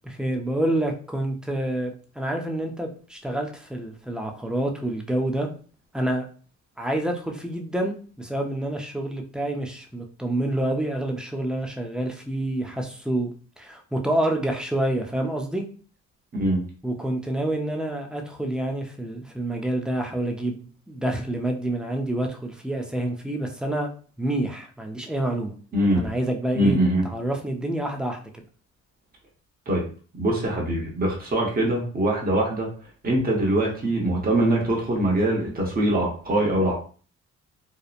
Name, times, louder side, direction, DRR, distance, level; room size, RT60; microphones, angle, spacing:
voice 1, 0.0-5.5 5.9-6.3 6.8-13.3 13.6-15.6 16.8-23.9 24.2-25.5 25.9-26.8 27.0-28.4, right 1 dB, 5° right, 2 dB, 0.5 m, -28 dB
voice 2, 16.3-16.6 25.7-26.1 26.5-27.0 29.7-29.8 30.2-32.7 33.0-36.7, right 1 dB, 30° right, -2 dB, 0.9 m, -23 dB
2.8 x 2.0 x 2.4 m, 0.41 s
cardioid pair, 90°, 30 cm